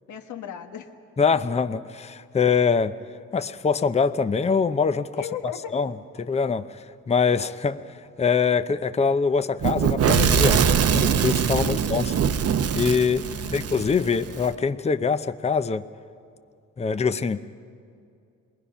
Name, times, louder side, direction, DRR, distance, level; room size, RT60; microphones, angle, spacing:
voice 1, 0.1-0.9 5.2-5.7 11.6-11.8 13.2-13.7, left 8 dB, 75° left, 3 dB, 1.8 m, -36 dB
voice 2, 1.2-3.0 3.3-5.3 5.7-5.9 6.2-10.6 10.9-12.1 12.7-15.9 16.8-17.4, left 5 dB, 20° left, 10 dB, 0.7 m, -24 dB
Fire / Explosion, 9.6-14.5, right 7 dB, 55° right, 0.9 m, -22 dB
28.0 x 21.0 x 5.8 m, 2.4 s
cardioid pair, 90°, 30 cm